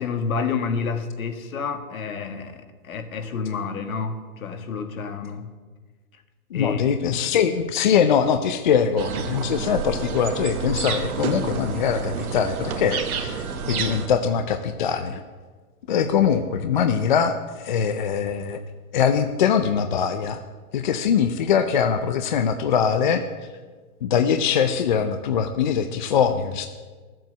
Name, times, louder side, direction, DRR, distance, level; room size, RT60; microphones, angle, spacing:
voice 1, 0.0-5.5 6.1-6.2 6.5-6.9, left 5 dB, 65° left, 6 dB, 2.0 m, -29 dB
voice 2, 6.5-15.2 15.9-18.6 18.9-20.4 20.7-23.2 24.0-26.7, left 7 dB, 35° left, 8 dB, 0.5 m, -22 dB
sound 1, 9.0-14.1, right 5 dB, 70° right, 1.6 m, -29 dB
14.0 x 7.6 x 7.9 m, 1.4 s
hypercardioid pair, 155°, 45 cm